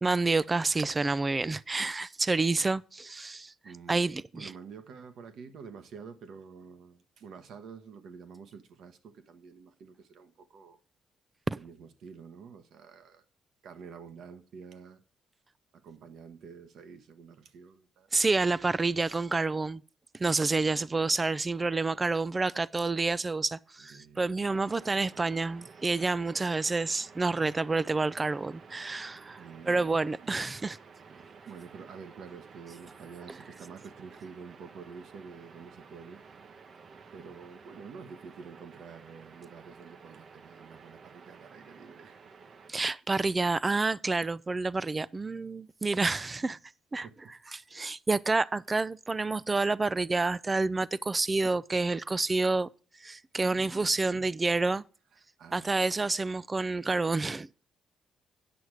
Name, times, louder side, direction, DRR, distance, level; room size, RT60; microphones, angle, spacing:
voice 1, 0.0-3.5 3.9-4.5 11.5-11.6 18.1-19.8 20.1-30.8 42.7-46.6 46.9-47.1 47.5-52.7 53.0-54.8 55.5-57.5, right 3 dB, 25° right, 0.4 m, -29 dB
voice 2, 3.6-4.0 4.3-10.8 11.5-13.2 13.6-15.0 15.7-18.1 20.6-21.0 23.8-24.3 29.4-29.9 31.4-36.2 37.1-42.2 46.4-46.6 47.0-47.3 53.4-53.8 54.1-54.2 55.4-56.0, right 6 dB, 70° right, 1.2 m, -48 dB
sound 1, 24.4-42.7, right 5 dB, 50° right, 0.8 m, -52 dB
9.5 x 6.3 x 4.8 m
cardioid pair, 90°, 0 cm